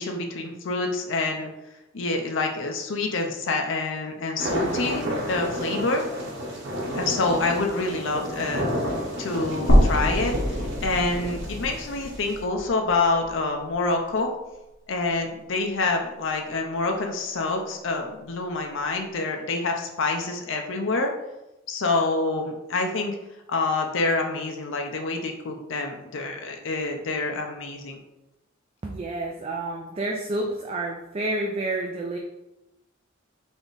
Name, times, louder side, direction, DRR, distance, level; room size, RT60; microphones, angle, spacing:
voice 1, 0.0-1.5 1.9-6.1 6.9-8.9 9.2-14.3 14.9-21.1 21.7-23.2 23.5-28.0, left 3 dB, 65° left, 3 dB, 0.6 m, -27 dB
sound 1, 4.4-12.4, equal, 60° right, 1.1 m, -31 dB
sound 2, 9.7-13.8 14.2-14.3 15.7-15.8, equal, 85° left, 1.1 m, -24 dB
voice 2, 28.8-32.2, right 2 dB, 30° right, 0 dB, 0.4 m, -29 dB
3.6 x 3.4 x 4.0 m, 0.94 s
head